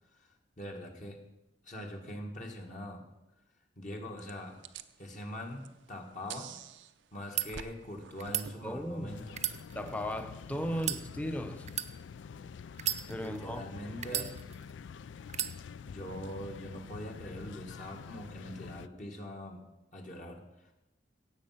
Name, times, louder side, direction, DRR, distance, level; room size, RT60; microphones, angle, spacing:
voice 1, 0.1-1.2 1.6-3.0 3.8-4.6 5.0-6.6 7.1-9.4 10.6-10.8 13.2-14.4 15.8-19.6 19.9-20.7, equal, 45° left, 1.8 m, -43 dB
sound 1, 4.2-9.3, right 7 dB, 90° right, 0.6 m, -50 dB
sound 2, 7.1-7.5 8.2-8.5 9.3-10.2 10.8-11.0 11.7-11.9 12.7-13.4 14.0-14.7 15.3-15.5, right 11 dB, 40° right, 0.6 m, -34 dB
voice 2, 8.6-9.3 9.7-11.7 13.1-13.6 14.1-14.3, equal, 10° left, 0.8 m, -36 dB
sound 3, 9.1-18.9, left 6 dB, 80° left, 0.4 m, -47 dB
17.0 x 7.5 x 5.8 m
head